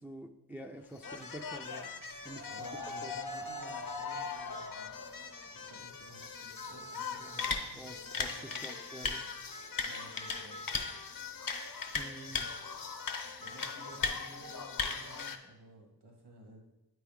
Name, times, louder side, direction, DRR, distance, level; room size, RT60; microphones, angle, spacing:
voice 1, 0.0-1.9 2.2-2.5 3.0-3.2 7.2-7.4 7.7-9.3 11.9-12.5, right 1 dB, 5° right, 4 dB, 0.4 m, -48 dB
sound 1, 1.0-15.4, left 4 dB, 55° left, 0.7 m, -39 dB
voice 2, 2.4-8.7 9.8-10.6 12.3-12.4 13.4-16.6, right 1 dB, 75° right, -1 dB, 2.1 m, -55 dB
8.2 x 4.6 x 3.6 m, 0.94 s
cardioid pair, 45°, 40 cm